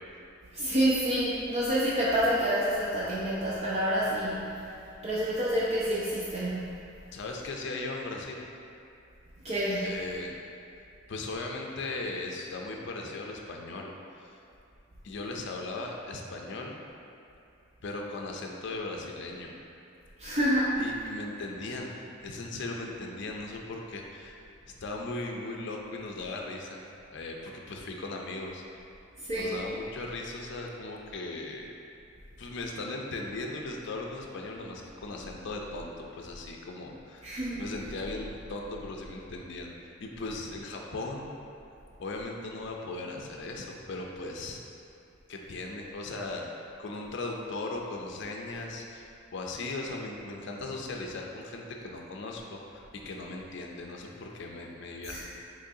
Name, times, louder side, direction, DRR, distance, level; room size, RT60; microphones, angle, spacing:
voice 1, 0.5-4.7 5.0-6.7 9.4-9.9 20.2-20.8 29.2-29.6 37.2-37.7 55.1-55.2, equal, 35° right, -8 dB, 0.5 m, -28 dB
voice 2, 7.1-8.5 9.8-10.3 11.1-13.9 14.2-14.4 15.0-16.8 17.8-19.5 20.8-22.0 22.2-24.4 24.8-26.8 27.1-28.8 29.4-31.7 32.4-37.3 37.6-41.3 42.0-44.6 45.3-46.5 46.8-55.2, left 2 dB, 60° left, 0 dB, 0.5 m, -38 dB
6.3 x 3.1 x 2.7 m, 2.7 s
head